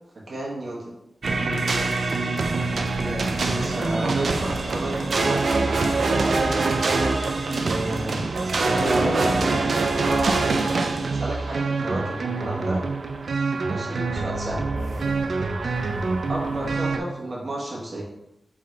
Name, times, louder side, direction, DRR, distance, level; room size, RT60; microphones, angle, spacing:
voice 1, 0.3-0.9 3.4-5.9 7.6-9.3 9.9-10.6 10.9-12.8 13.7-14.6 16.3-18.0, right 1 dB, 50° right, -4 dB, 1.2 m, -32 dB
sound 1, 1.2-17.0, right 3 dB, 70° right, 0.4 m, -24 dB
voice 2, 1.3-1.9 2.9-3.8 6.6-6.7 7.5-8.0 8.5-9.2 14.6-15.2 16.4-16.7, equal, 25° left, -4 dB, 1.3 m, -35 dB
3.8 x 3.2 x 3.7 m, 0.88 s
wide cardioid pair, 120°, 0 cm